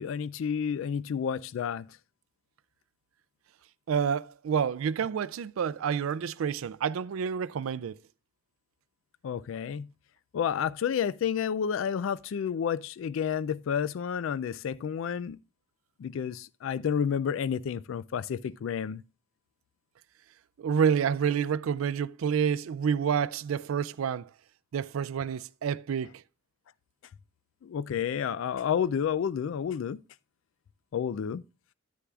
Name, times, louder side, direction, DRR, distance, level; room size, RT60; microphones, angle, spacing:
voice 1, 0.0-1.9 9.2-9.9 10.3-15.4 16.0-19.0 27.6-30.0 30.9-31.4, left 7 dB, 70° left, 0.3 m, -30 dB
voice 2, 3.9-8.0 20.6-24.3 24.7-26.2, right 7 dB, 90° right, 0.4 m, -28 dB
10.0 x 9.4 x 2.3 m
head